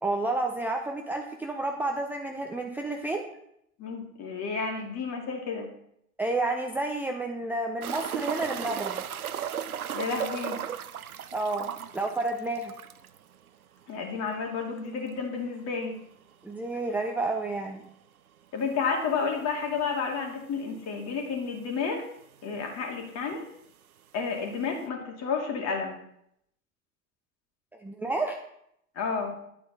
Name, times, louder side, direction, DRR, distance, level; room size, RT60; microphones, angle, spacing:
voice 1, 0.0-3.2 6.2-9.0 11.3-12.7 16.4-17.8 27.8-28.4, right 2 dB, 5° right, 2 dB, 0.7 m, -30 dB
voice 2, 3.8-5.7 9.9-10.6 13.9-16.0 18.5-22.0 22.4-23.4 24.1-26.0 29.0-29.3, left 5 dB, 35° left, 1 dB, 2.6 m, -31 dB
sound 1, 7.8-13.2 13.5-13.6 13.9-14.0 16.8-16.9 18.6-18.7 19.5-19.6 19.8-19.9 20.8-20.9 21.0-21.7 22.6-22.7, right 9 dB, 80° right, 0.7 m, -35 dB
10.5 x 8.6 x 4.1 m, 0.74 s
figure-of-eight pair, 85°, 44 cm